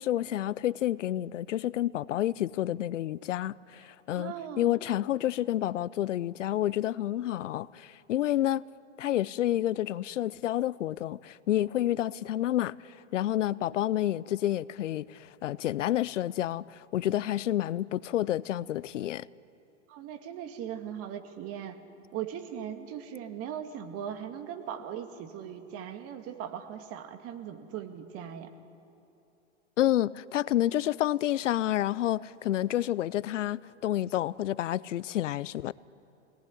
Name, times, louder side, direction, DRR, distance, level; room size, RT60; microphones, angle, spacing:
voice 1, 0.0-8.6 9.0-19.3 29.8-35.7, left 13 dB, 80° left, 0.6 m, -29 dB
voice 2, 4.2-4.8 19.9-21.8 22.1-28.5, right 9 dB, 40° right, 2.1 m, -39 dB
24.0 x 19.0 x 10.0 m
hypercardioid pair, 115°, 37 cm